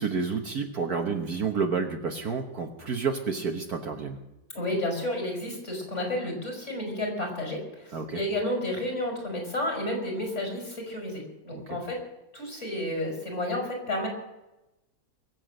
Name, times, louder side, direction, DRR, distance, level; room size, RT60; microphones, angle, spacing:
voice 1, 0.0-4.2 7.9-8.2 11.5-11.8, right 5 dB, 55° right, 4 dB, 1.6 m, -30 dB
voice 2, 4.5-12.0 12.3-14.1, left 1 dB, 35° left, 1 dB, 5.0 m, -31 dB
22.5 x 7.7 x 7.6 m, 0.96 s
omnidirectional pair, 2.1 m